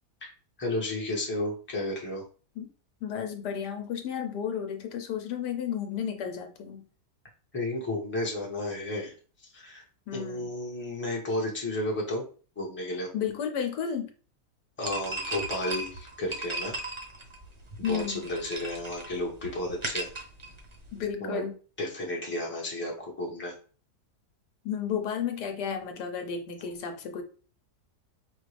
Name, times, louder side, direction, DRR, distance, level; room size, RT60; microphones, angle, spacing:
voice 1, 0.6-2.2 7.5-9.1 9.5-9.8 10.1-12.3 12.6-13.1 14.8-16.8 17.8-20.1 21.2-21.4 21.8-23.6, left 1 dB, 10° left, -1 dB, 0.8 m, -32 dB
voice 2, 3.0-6.8 10.1-10.5 13.1-14.1 17.8-18.2 20.9-21.5 24.6-27.2, left 8 dB, 85° left, 5 dB, 1.3 m, -32 dB
sound 1, 14.8-21.1, right 2 dB, 35° right, 0.5 m, -37 dB
4.8 x 2.5 x 3.2 m, 0.38 s
omnidirectional pair, 1.7 m